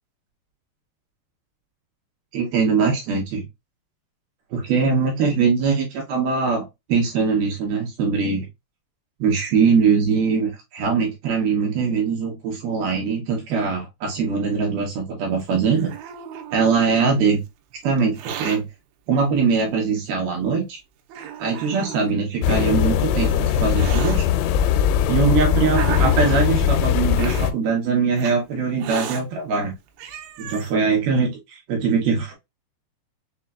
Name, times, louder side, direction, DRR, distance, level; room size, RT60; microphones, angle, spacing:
voice 1, 2.3-3.4 4.5-8.5 9.2-15.9 16.5-17.4 17.8-18.7 19.1-20.8 21.4-24.3 25.1-29.7 30.4-32.3, right 5 dB, 75° right, 0 dB, 2.4 m, -22 dB
Hiss, 15.4-17.1 18.0-18.6 19.6-19.7 20.5-20.6 21.1-22.1 23.0-24.2 25.0-26.5 27.1-27.5 28.2-28.3 28.8-29.2 29.7-29.8 30.0-30.7, right 8 dB, 90° right, 3.0 m, -33 dB
sound 1, 22.4-27.5, left 9 dB, 90° left, 2.9 m, -20 dB
6.7 x 2.5 x 2.3 m, 0.20 s
omnidirectional pair, 5.3 m